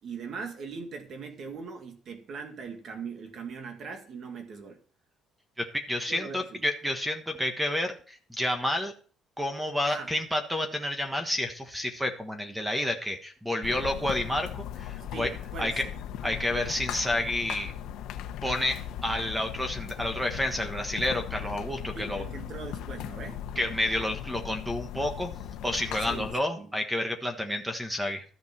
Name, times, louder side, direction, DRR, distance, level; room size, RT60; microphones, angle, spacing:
voice 1, 0.0-4.8 6.1-6.6 9.8-10.1 15.1-15.9 21.9-23.5 26.0-26.7, right 5 dB, 45° right, 1.9 m, -40 dB
voice 2, 5.6-8.9 9.4-15.3 15.6-15.8 16.2-17.7 18.4-22.2 23.6-25.3 25.6-28.2, left 1 dB, 5° right, 1.4 m, -30 dB
sound 1, 13.6-26.4, left 10 dB, 80° left, 1.0 m, -38 dB
13.0 x 7.1 x 5.9 m
cardioid pair, 150°, 0 cm